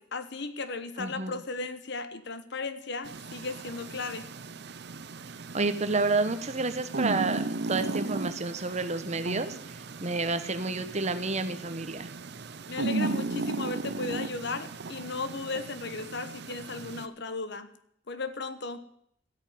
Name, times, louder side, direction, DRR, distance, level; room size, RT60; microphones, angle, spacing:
voice 1, 0.0-4.3 12.7-17.7 18.1-18.8, left 3 dB, 60° left, 11 dB, 1.1 m, -36 dB
voice 2, 1.0-1.4 5.5-12.1, right 3 dB, 35° right, 10 dB, 1.1 m, -30 dB
sound 1, 3.0-17.1, right 3 dB, 60° right, 0.8 m, -36 dB
14.0 x 9.0 x 9.3 m, 0.69 s
head